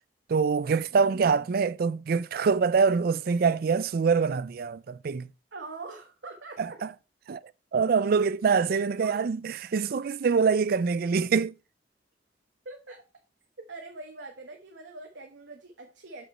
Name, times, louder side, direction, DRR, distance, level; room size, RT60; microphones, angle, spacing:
voice 1, 0.3-5.3 6.8-6.9 7.3-7.4 7.7-11.5, right 5 dB, 55° right, 0.4 m, -24 dB
voice 2, 0.9-1.4 5.5-6.8 9.0-9.2 12.6-13.0 13.7-16.2, right 3 dB, 80° right, 1.1 m, -43 dB
7.8 x 5.1 x 4.3 m
head